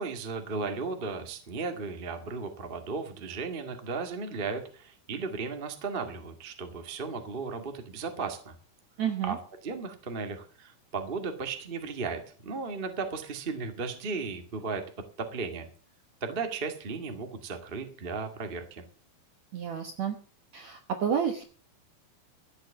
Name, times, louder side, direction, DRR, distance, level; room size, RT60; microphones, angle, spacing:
voice 1, 0.0-8.5 9.2-9.4 9.6-14.8 15.2-15.7 16.2-18.8, right 4 dB, 55° right, 6 dB, 0.6 m, -35 dB
voice 2, 9.0-9.4 19.5-20.1 20.5-21.4, right 8 dB, 70° right, 6 dB, 1.6 m, -30 dB
14.0 x 7.9 x 7.0 m, 0.41 s
omnidirectional pair, 4.7 m